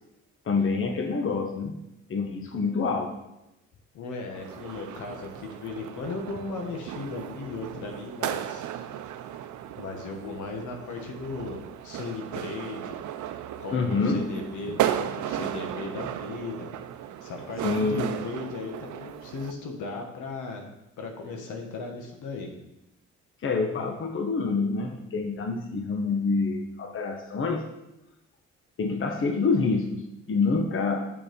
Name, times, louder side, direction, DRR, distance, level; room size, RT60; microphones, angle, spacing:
voice 1, 0.4-1.8 2.1-3.1 13.7-14.3 17.6-18.1 23.4-27.7 28.8-31.1, left 4 dB, 45° left, 4 dB, 1.1 m, -27 dB
voice 2, 3.9-8.6 9.8-13.0 13.6-16.7 17.2-22.5, left 3 dB, 80° left, 3 dB, 1.6 m, -37 dB
sound 1, 4.3-19.5, right 11 dB, 75° right, 0.6 m, -35 dB
6.8 x 6.6 x 5.3 m, 0.91 s
cardioid pair, 90°, 30 cm